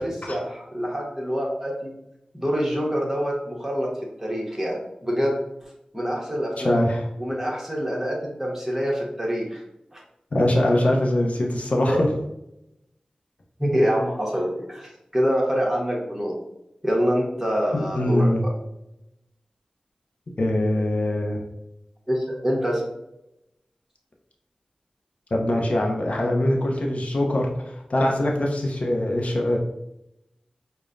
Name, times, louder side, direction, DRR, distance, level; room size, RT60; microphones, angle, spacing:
voice 1, 0.0-1.9 2.3-3.9 4.2-5.4 5.9-6.8 7.2-9.6 9.9-10.0 11.9-12.0 13.6-16.3 16.8-18.3 22.1-22.8, equal, 10° right, -2 dB, 1.2 m, -25 dB
voice 2, 6.6-7.0 10.3-12.1 17.7-18.5 20.4-21.4 25.3-29.6, left 1 dB, 60° left, 0 dB, 0.7 m, -22 dB
4.9 x 2.2 x 2.5 m, 0.86 s
cardioid pair, 50°, 3 cm